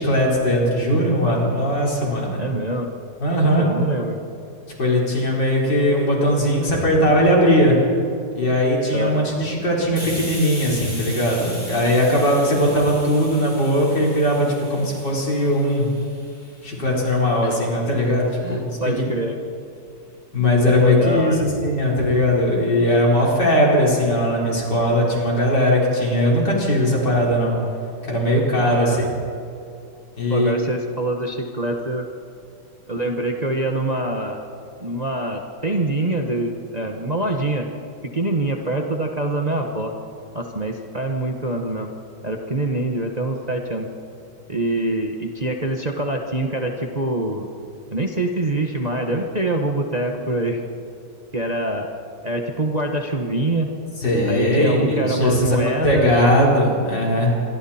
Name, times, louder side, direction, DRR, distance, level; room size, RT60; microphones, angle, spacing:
voice 1, 0.0-2.4 3.2-3.7 4.8-7.8 8.4-15.9 16.6-18.8 20.3-27.6 28.0-29.1 30.2-30.6 54.0-57.3, equal, 70° left, -3 dB, 5.0 m, -19 dB
voice 2, 2.3-2.9 3.4-4.2 8.9-9.2 17.4-17.6 18.4-19.4 20.8-21.4 28.6-29.1 30.3-32.1 32.9-34.4 34.8-37.7 38.1-39.9 40.3-41.9 42.2-43.9 44.5-47.5 47.9-50.6 51.3-51.9 52.2-53.7 54.3-56.1, right 2 dB, 25° right, 2 dB, 1.2 m, -25 dB
Hiss, 10.0-17.4, left 1 dB, 55° left, 7.2 m, -38 dB
26.5 x 23.0 x 4.4 m, 2.6 s
omnidirectional pair, 1.9 m